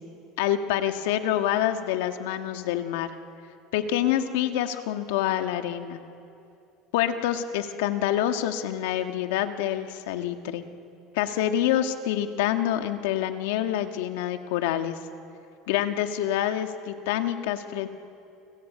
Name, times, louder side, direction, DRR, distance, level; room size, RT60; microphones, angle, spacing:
voice 1, 0.4-3.1 3.7-6.0 6.9-10.6 11.1-15.0 15.7-17.9, left 11 dB, 85° left, 7 dB, 1.6 m, -26 dB
29.5 x 21.0 x 8.5 m, 2.7 s
supercardioid pair, 140°, 0 cm